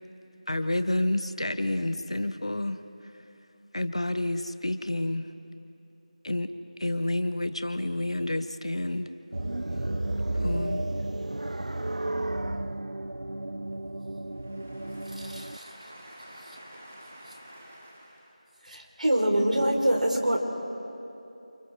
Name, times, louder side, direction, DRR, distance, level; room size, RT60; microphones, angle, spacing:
voice 1, 0.5-2.8 3.7-5.2 6.2-6.5 6.8-9.1 10.4-10.8, left 1 dB, 50° left, 11 dB, 0.9 m, -29 dB
sound 1, 9.3-15.6, right 1 dB, 65° right, 0.5 m, -32 dB
voice 2, 14.3-18.3, equal, 10° right, 1 dB, 0.4 m, -49 dB
voice 3, 15.2-15.6 18.7-20.4, right 1 dB, 85° right, 1 dB, 4.4 m, -25 dB
29.0 x 28.0 x 3.7 m, 2.9 s
figure-of-eight pair, 180°, 4 cm